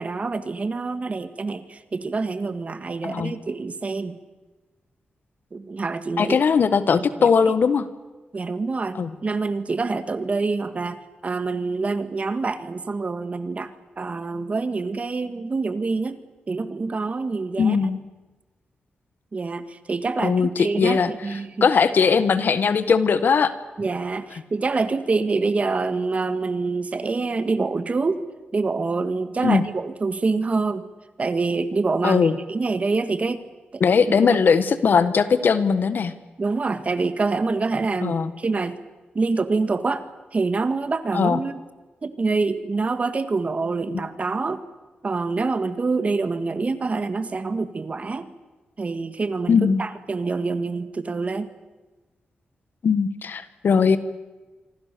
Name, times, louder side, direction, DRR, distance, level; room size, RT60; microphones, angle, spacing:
voice 1, 0.0-4.1 5.5-6.4 7.2-7.3 8.3-16.2 16.5-17.8 19.3-21.7 23.8-28.2 28.5-30.8 31.2-33.5 33.7-34.2 36.4-38.8 39.1-40.1 40.3-41.6 42.0-44.6 45.0-48.3 48.8-51.5, right 3 dB, 40° right, 11 dB, 1.8 m, -26 dB
voice 2, 6.2-7.9 9.0-9.1 17.6-18.0 20.2-21.1 21.6-23.5 29.4-29.6 32.0-32.4 33.8-36.1 38.0-38.3 41.1-41.4 49.5-49.8 52.8-54.0, left 6 dB, 65° left, 13 dB, 1.5 m, -19 dB
26.5 x 24.0 x 6.9 m, 1.2 s
cardioid pair, 85°, 4 cm